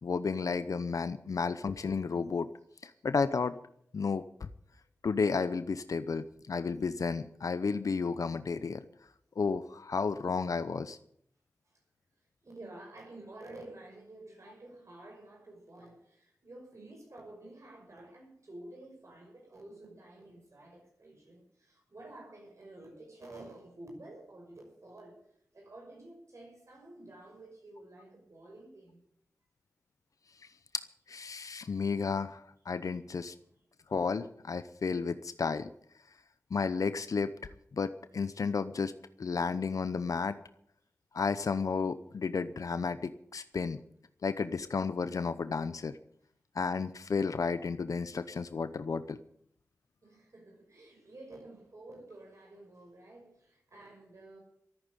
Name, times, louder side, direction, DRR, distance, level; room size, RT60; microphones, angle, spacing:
voice 1, 0.0-2.5 2.8-3.6 3.9-4.5 5.0-8.8 9.4-11.0 30.4-30.5 30.7-33.3 33.9-35.7 36.5-37.3 37.7-38.9 39.2-40.4 41.1-43.8 44.2-46.0 46.5-49.2, left 5 dB, 75° left, 0.7 m, -32 dB
voice 2, 12.4-25.3 25.5-29.0 50.0-54.4, right 2 dB, 60° right, 6.0 m, -51 dB
14.0 x 9.0 x 9.8 m
cardioid pair, 50°, 6 cm